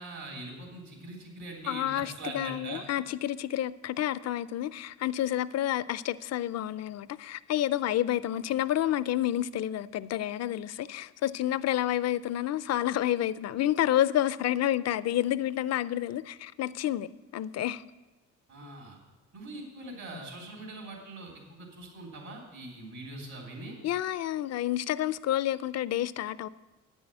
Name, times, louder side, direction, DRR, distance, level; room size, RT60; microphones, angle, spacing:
voice 1, 0.0-1.9 2.2-2.8 18.5-19.0 19.3-23.7, right 2 dB, 65° right, 3.4 m, -42 dB
voice 2, 1.6-17.8 18.6-18.7 19.8-20.0 23.8-26.5, left 12 dB, 60° left, 0.4 m, -29 dB
9.3 x 6.3 x 8.5 m
cardioid pair, 90°, 30 cm